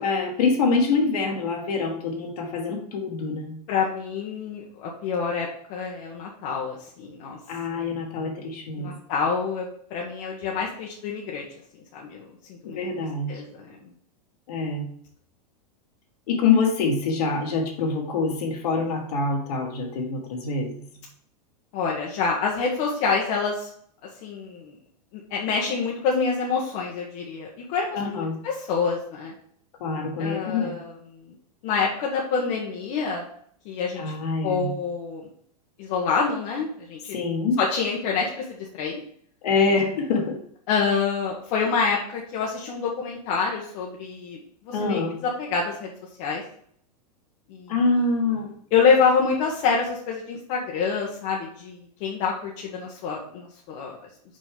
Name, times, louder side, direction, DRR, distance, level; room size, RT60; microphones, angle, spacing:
voice 1, 0.0-3.5 7.5-8.9 12.6-13.3 14.5-14.9 16.3-20.8 27.9-28.4 29.8-30.8 34.0-34.7 37.1-37.6 39.4-40.4 44.7-45.2 47.7-48.5, left 4 dB, 70° left, 2 dB, 1.8 m, -25 dB
voice 2, 3.7-7.4 8.8-11.5 11.9-12.8 13.3-13.8 21.7-23.7 24.2-24.8 25.3-29.3 30.2-31.0 31.6-33.2 33.6-34.0 34.4-35.3 35.8-37.2 37.6-38.4 38.8-39.0 40.7-44.4 44.7-45.9 46.2-46.4 47.5-47.7 48.7-54.0, left 5 dB, 55° left, -2 dB, 1.2 m, -26 dB
5.3 x 5.2 x 3.7 m, 0.63 s
hypercardioid pair, 110°, 21 cm